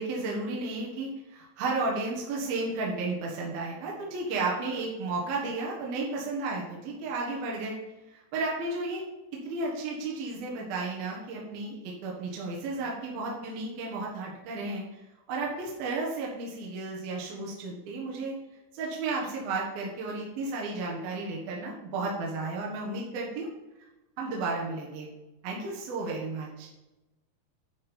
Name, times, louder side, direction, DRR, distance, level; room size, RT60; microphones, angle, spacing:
voice 1, 0.0-7.8 8.1-9.0 9.4-18.3 18.7-23.5 24.2-25.1 25.4-26.7, right 3 dB, 65° right, -3 dB, 3.1 m, -33 dB
10.5 x 5.3 x 4.3 m, 1.0 s
omnidirectional pair, 4.9 m